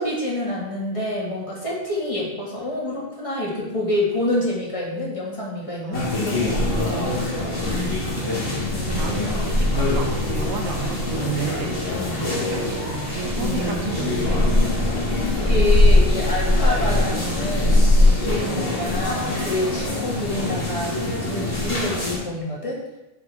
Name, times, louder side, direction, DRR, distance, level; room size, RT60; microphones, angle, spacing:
voice 1, 0.0-7.2 8.7-9.1 11.9-12.3 15.3-17.8 18.2-22.8, left 1 dB, 25° left, -5 dB, 2.1 m, -27 dB
voice 2, 5.8-6.7 7.8-11.9 12.2-14.6 16.7-16.8, right 6 dB, 80° right, 3 dB, 1.1 m, -33 dB
sound 1, 5.9-22.2, left 2 dB, 80° left, 2.2 m, -22 dB
9.2 x 5.4 x 3.5 m, 0.94 s
omnidirectional pair, 1.3 m